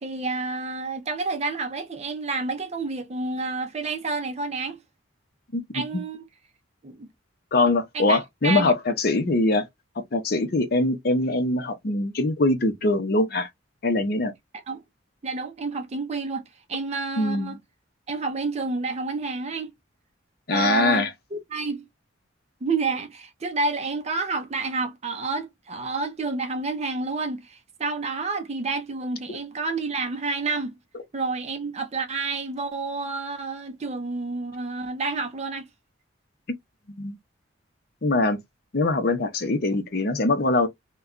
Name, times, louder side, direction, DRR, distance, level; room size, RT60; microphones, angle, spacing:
voice 1, 0.0-4.8 5.7-6.2 6.8-7.1 7.9-8.7 14.5-14.8 15.2-16.4 16.7-17.6 18.1-19.7 20.5-21.9 22.6-30.8 31.1-35.7, right 3 dB, 35° right, 0.5 m, -29 dB
voice 2, 5.5-5.8 7.5-9.6 10.1-13.5 13.8-14.3 17.2-17.6 20.5-21.1 29.3-29.4 37.0-37.2 38.0-38.4 38.7-40.7, left 2 dB, 50° left, 0.6 m, -23 dB
2.2 x 2.2 x 3.6 m
head